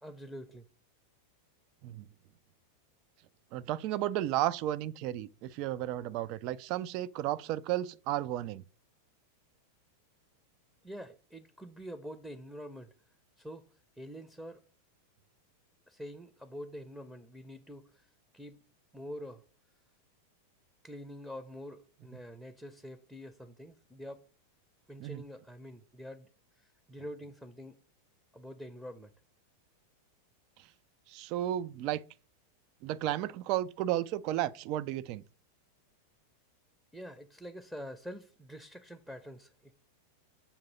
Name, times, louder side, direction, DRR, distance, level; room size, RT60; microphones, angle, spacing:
voice 1, 0.0-0.6 10.8-12.9 13.4-13.7 14.0-14.6 15.9-18.1 18.3-18.6 18.9-19.4 20.8-24.3 24.9-26.3 26.6-27.8 28.3-29.1 36.9-39.7, equal, ahead, 0.7 m, -46 dB
voice 2, 3.5-8.6 25.0-25.2 31.1-32.0 32.8-35.2, right 13 dB, 40° right, 0.4 m, -33 dB
7.0 x 2.7 x 5.4 m
figure-of-eight pair, 90°, 0 cm